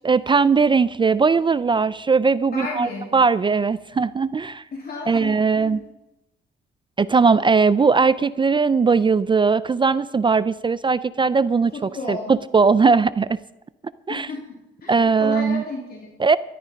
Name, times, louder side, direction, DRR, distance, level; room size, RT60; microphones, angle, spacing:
voice 1, 0.0-4.6 5.1-5.8 7.0-13.4 14.1-14.3 14.9-15.6 16.2-16.4, right 4 dB, 25° right, 16 dB, 0.4 m, -19 dB
voice 2, 2.5-3.1 4.7-5.8 11.7-12.3 14.1-16.1, left 2 dB, 50° left, -1 dB, 3.2 m, -33 dB
14.0 x 12.5 x 5.2 m, 0.94 s
cardioid pair, 90°, 20 cm